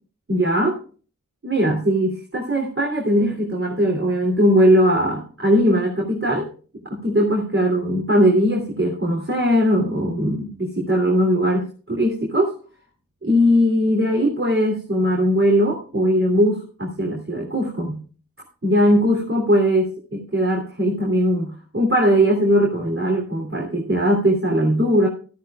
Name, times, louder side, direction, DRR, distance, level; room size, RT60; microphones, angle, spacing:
voice 1, 0.3-0.8 1.4-6.5 6.9-12.5 13.2-18.0 18.6-25.1, equal, 35° right, -1 dB, 3.2 m, -19 dB
14.5 x 14.5 x 2.4 m, 0.41 s
cardioid pair, 55°, 34 cm